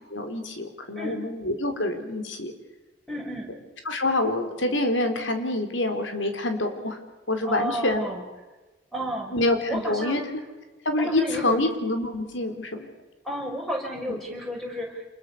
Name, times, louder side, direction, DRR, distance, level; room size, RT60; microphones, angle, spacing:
voice 1, 0.1-2.5 3.9-7.0 7.3-8.0 9.3-10.2 10.9-12.9 14.1-14.2, left 2 dB, 85° left, 6 dB, 4.0 m, -26 dB
voice 2, 3.1-3.5 7.4-8.2 8.9-9.3 9.7-10.2 11.0-11.6 13.2-15.1, equal, ahead, 0 dB, 5.6 m, -32 dB
27.5 x 21.5 x 6.9 m, 1.2 s
head